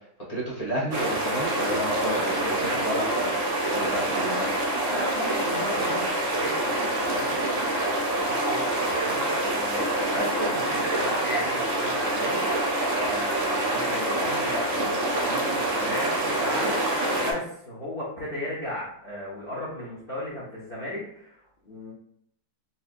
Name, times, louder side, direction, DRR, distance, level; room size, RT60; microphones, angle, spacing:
voice 1, 0.3-3.4 3.7-4.5, equal, 25° left, -7 dB, 1.1 m, -30 dB
sound 1, 0.9-17.3, right 1 dB, 65° right, 0.8 m, -26 dB
voice 2, 4.8-21.9, left 1 dB, 55° left, -5 dB, 0.6 m, -36 dB
4.2 x 2.4 x 2.5 m, 0.68 s
omnidirectional pair, 2.1 m